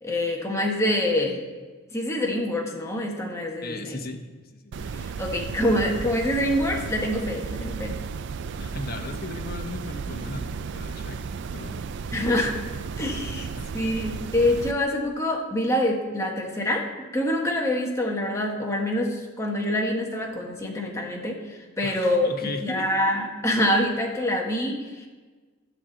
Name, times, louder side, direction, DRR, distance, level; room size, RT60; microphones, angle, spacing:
voice 1, 0.0-1.4 1.9-4.0 4.9-8.0 12.1-12.5 13.0-13.5 13.7-16.9 17.1-22.3 22.6-25.1, left 1 dB, 15° left, 0 dB, 1.4 m, -26 dB
voice 2, 3.6-4.2 4.5-5.2 8.5-11.2 11.5-11.9 13.5-13.8 21.8-22.9, left 2 dB, 45° left, 4 dB, 1.1 m, -37 dB
sound 1, 4.7-14.7, right 5 dB, 55° right, 0.4 m, -34 dB
12.0 x 4.3 x 7.7 m, 1.4 s
head